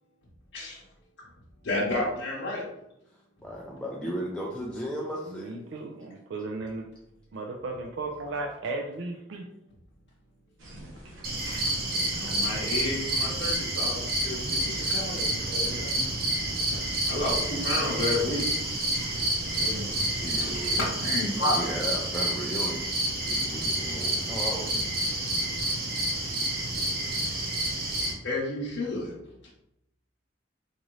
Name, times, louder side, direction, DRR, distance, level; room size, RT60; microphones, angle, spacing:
voice 1, 1.6-2.6 12.1-15.4 17.1-18.9 20.4-21.6 28.2-29.1, left 1 dB, 65° left, -7 dB, 0.8 m, -31 dB
voice 2, 3.4-5.5 20.0-20.8 21.3-22.9 23.3-25.0, equal, 5° left, -4 dB, 0.3 m, -35 dB
voice 3, 5.3-6.9 7.3-9.5, right 2 dB, 70° right, 1 dB, 0.4 m, -35 dB
sound 1, 10.6-20.9, equal, 85° right, 0.9 m, -42 dB
sound 2, 11.2-28.1, right 1 dB, 50° right, 0.8 m, -29 dB
3.9 x 2.5 x 3.1 m, 0.82 s
head